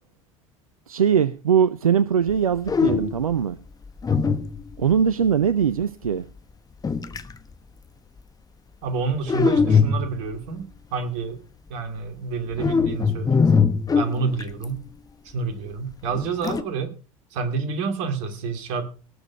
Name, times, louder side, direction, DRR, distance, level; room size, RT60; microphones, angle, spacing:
voice 1, 0.9-3.6 4.8-6.2, right 7 dB, 85° right, 15 dB, 0.5 m, -21 dB
sound 1, 2.3-2.4 2.7-3.3 4.0-4.9 6.8-7.3 9.3-10.4 12.5-14.6 16.1-16.6, left 5 dB, 20° left, 1.1 m, -21 dB
voice 2, 8.8-11.4 11.7-13.7 13.9-14.8 15.2-17.0 17.3-18.9, right 5 dB, 65° right, 8 dB, 2.5 m, -29 dB
18.5 x 7.0 x 5.3 m, 0.36 s
figure-of-eight pair, 70°, 18 cm